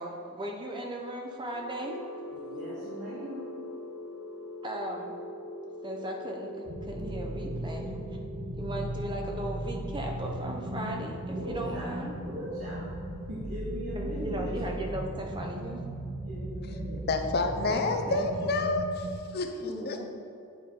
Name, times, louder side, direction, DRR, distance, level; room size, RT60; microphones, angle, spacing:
voice 1, 0.0-2.0 4.6-5.1 5.8-7.9 8.6-12.1 13.9-15.8 17.7-18.6 19.6-20.0, right 1 dB, 20° right, 1 dB, 0.7 m, -37 dB
sound 1, 1.4-15.2, left 1 dB, 75° left, 1.0 m, -44 dB
voice 2, 2.3-3.5 11.3-11.9 12.2-13.0 13.3-14.6 16.3-17.0, equal, 70° right, -11 dB, 1.9 m, -39 dB
sound 2, 6.7-19.1, right 1 dB, 50° right, 1.0 m, -37 dB
voice 3, 16.9-20.0, left 3 dB, 45° left, 6 dB, 0.5 m, -29 dB
8.1 x 4.9 x 4.4 m, 2.5 s
head